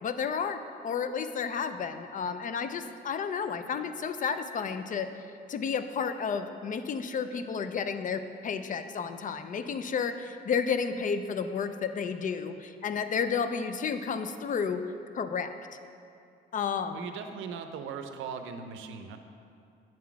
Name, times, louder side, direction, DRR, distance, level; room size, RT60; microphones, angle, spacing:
voice 1, 0.0-5.1 5.5-14.8 15.1-15.5 16.5-17.1, left 6 dB, 40° left, 9 dB, 0.4 m, -31 dB
voice 2, 16.9-19.2, right 6 dB, 80° right, 7 dB, 0.5 m, -39 dB
7.4 x 3.8 x 5.8 m, 2.5 s
cardioid pair, 90°, 20 cm